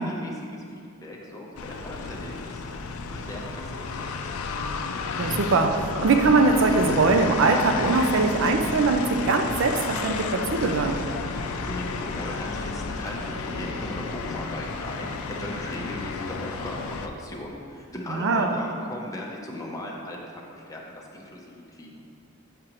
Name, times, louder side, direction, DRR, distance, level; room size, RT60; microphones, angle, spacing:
voice 1, 0.0-4.3 11.5-22.0, left 1 dB, 15° left, -2 dB, 0.6 m, -38 dB
sound 1, 1.6-17.1, left 4 dB, 70° left, 0.4 m, -32 dB
voice 2, 5.2-11.0 18.1-18.5, right 3 dB, 60° right, 5 dB, 0.4 m, -22 dB
7.5 x 5.0 x 2.9 m, 2.4 s
head